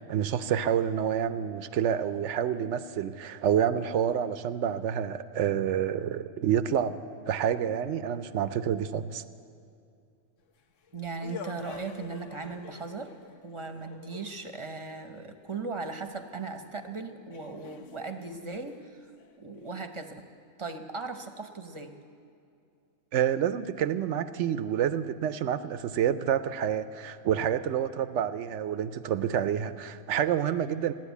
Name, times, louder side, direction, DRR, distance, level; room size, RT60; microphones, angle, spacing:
voice 1, 0.0-7.0 7.3-9.2 23.1-30.9, right 9 dB, 65° right, 13 dB, 0.8 m, -28 dB
sound 1, 10.5-14.8 16.6-16.7 17.3-19.7, left 6 dB, 65° left, 1.1 m, -48 dB
voice 2, 10.9-13.2 13.4-19.1 19.4-20.3 20.6-22.0, right 4 dB, 25° right, 7 dB, 0.7 m, -38 dB
15.5 x 10.5 x 8.2 m, 2.5 s
omnidirectional pair, 1.4 m